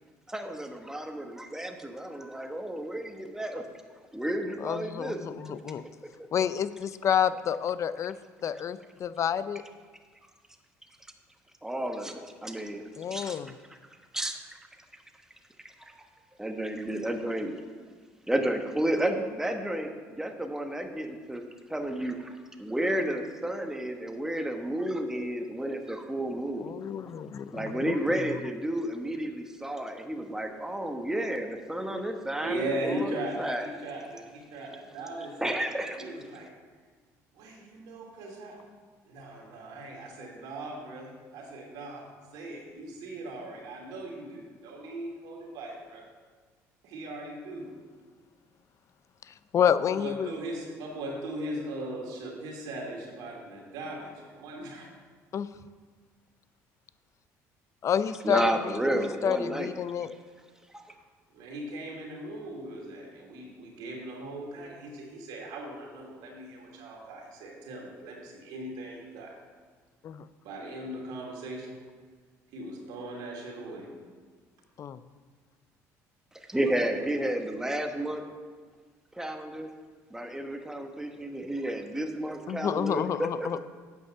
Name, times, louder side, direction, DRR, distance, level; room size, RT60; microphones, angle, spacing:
voice 1, 0.3-3.6 4.1-5.2 11.6-12.8 13.1-13.4 14.1-14.6 15.8-15.9 16.4-17.6 18.3-21.4 21.7-26.7 27.5-33.7 35.4-36.0 58.2-59.7 60.0-60.1 60.7-60.9 76.5-78.2 79.1-79.7 80.1-83.6, right 1 dB, 5° right, 5 dB, 1.2 m, -31 dB
voice 2, 4.6-5.8 6.3-8.1 8.4-9.6 13.0-13.5 26.6-28.0 49.3-50.3 55.3-55.5 57.8-60.1 70.0-70.2 74.8-75.0 82.5-83.6, left 8 dB, 45° left, 14 dB, 0.5 m, -29 dB
voice 3, 32.4-35.7 36.0-36.5 37.3-38.6 39.0-46.1 46.8-47.7 49.8-54.9 61.3-69.3 70.4-71.8 72.5-73.9, right 1 dB, 75° right, -1 dB, 2.6 m, -39 dB
8.9 x 5.5 x 6.7 m, 1.5 s
supercardioid pair, 80°, 7 cm